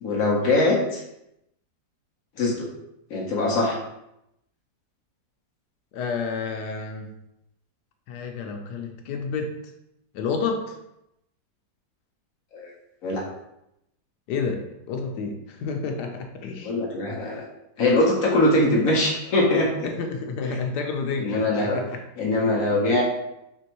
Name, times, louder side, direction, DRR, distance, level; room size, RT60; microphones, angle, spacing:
voice 1, 0.0-1.0 2.4-2.7 3.1-3.8 12.5-12.7 13.0-13.2 16.6-17.4 17.8-19.9 21.2-21.8 22.2-23.0, left 2 dB, 60° left, -3 dB, 1.1 m, -22 dB
voice 2, 5.9-7.1 8.1-9.6 10.1-10.8 14.3-16.7 19.8-22.0, left 5 dB, 90° left, 4 dB, 1.2 m, -30 dB
4.4 x 3.0 x 2.9 m, 0.84 s
omnidirectional pair, 1.7 m